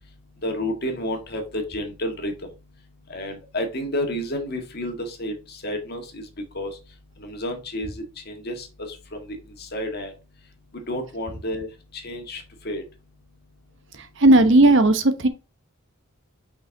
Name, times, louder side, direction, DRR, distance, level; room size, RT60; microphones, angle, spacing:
voice 1, 0.4-2.3 3.1-6.3 6.5-6.7 7.2-10.1 10.7-11.7 11.9-12.8, left 1 dB, 45° left, 1.7 m, -30 dB
voice 2, 14.0-15.3, right 2 dB, 60° right, 1.0 m, -15 dB
5.6 x 5.5 x 3.5 m
head